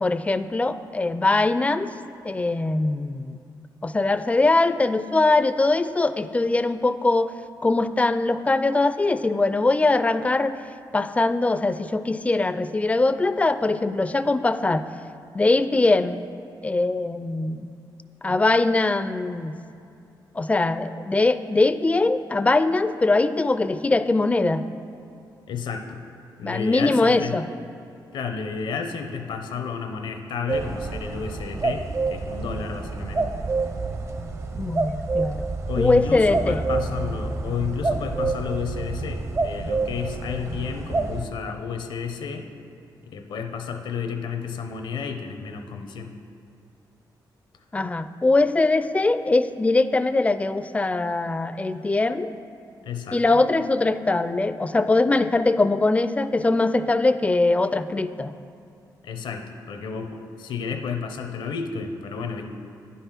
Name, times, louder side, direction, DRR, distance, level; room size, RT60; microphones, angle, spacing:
voice 1, 0.0-1.9 2.2-3.4 3.8-7.3 7.6-10.6 10.9-14.8 15.3-16.2 16.6-17.7 18.2-19.6 20.4-24.6 26.4-27.5 34.5-35.5 35.8-36.6 47.7-52.3 53.1-58.3, left 2 dB, 15° left, 12 dB, 0.4 m, -22 dB
voice 2, 25.5-26.0 26.4-27.3 28.1-33.3 35.7-42.5 43.1-46.1 52.9-53.4 59.0-62.5, left 6 dB, 85° left, 6 dB, 0.8 m, -31 dB
sound 1, 30.5-41.2, right 3 dB, 35° right, 0.6 m, -28 dB
9.8 x 5.6 x 5.9 m, 2.6 s
cardioid pair, 90°, 8 cm